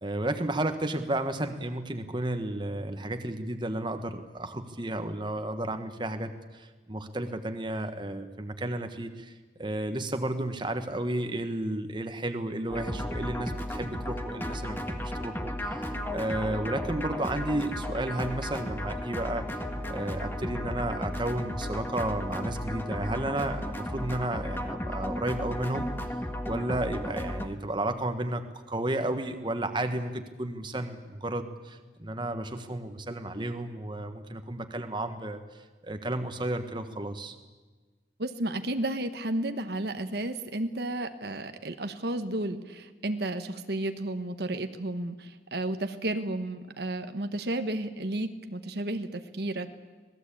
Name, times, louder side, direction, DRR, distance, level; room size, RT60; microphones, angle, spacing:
voice 1, 0.0-9.3 9.6-19.5 19.9-25.9 26.4-35.4 35.8-37.3, right 1 dB, 25° right, 7 dB, 1.4 m, -32 dB
sound 1, 12.7-27.5, left 1 dB, 10° left, 1.6 m, -34 dB
voice 2, 38.2-49.7, right 1 dB, 55° right, 8 dB, 1.2 m, -32 dB
26.0 x 18.5 x 8.6 m, 1.3 s
head